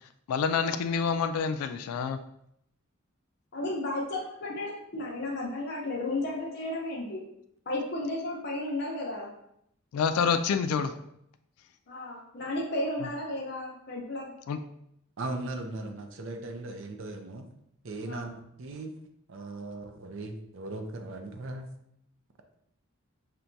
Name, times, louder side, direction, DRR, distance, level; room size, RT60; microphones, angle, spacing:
voice 1, 0.3-2.2 9.9-10.9 14.5-14.6, left 6 dB, 80° left, 9 dB, 0.3 m, -27 dB
voice 2, 3.5-7.2 7.7-9.3 11.9-14.3 18.1-18.3, left 1 dB, 50° left, -2 dB, 0.7 m, -33 dB
voice 3, 15.2-17.5 17.8-19.0 19.3-21.7, right 2 dB, 60° right, 5 dB, 0.5 m, -38 dB
5.7 x 2.2 x 2.6 m, 0.75 s
head